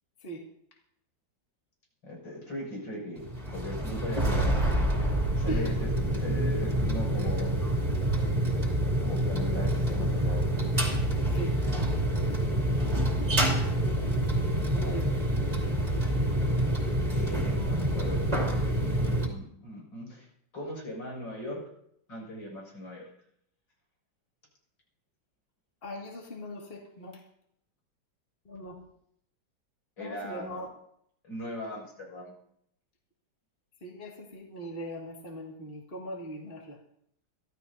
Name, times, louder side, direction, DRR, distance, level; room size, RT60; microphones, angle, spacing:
voice 1, 2.0-3.3 3.5-4.8 5.4-5.7 6.1-7.6 9.0-10.5 14.6-15.1 17.1-20.3 20.5-21.6 22.1-23.1 30.0-30.6 31.2-32.3, left 1 dB, 75° left, -2 dB, 7.3 m, -39 dB
sound 1, 3.2-19.3, right 1 dB, 20° right, 2.8 m, -27 dB
voice 2, 14.7-15.1 25.8-27.2 28.4-28.8 30.0-30.7 33.8-36.8, right 1 dB, 30° left, -1 dB, 2.4 m, -40 dB
24.0 x 15.0 x 2.8 m, 0.69 s
omnidirectional pair, 2.1 m